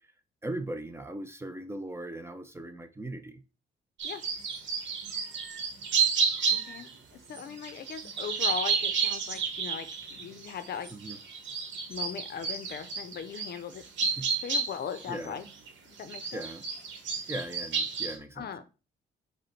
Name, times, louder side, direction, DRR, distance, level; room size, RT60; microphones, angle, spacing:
voice 1, 0.4-3.4 10.9-11.2 14.2-14.3 15.1-15.4 16.3-16.6 17.3-18.5, right 1 dB, 15° right, 0.6 m, -38 dB
sound 1, 4.0-6.9 7.3-15.7 16.0-18.2, right 5 dB, 70° right, 1.2 m, -31 dB
voice 2, 6.5-10.9 11.9-13.8 14.4-15.4 16.0-16.5 18.4-18.7, left 7 dB, 55° left, 0.6 m, -39 dB
5.0 x 2.2 x 4.4 m
cardioid pair, 90°, 20 cm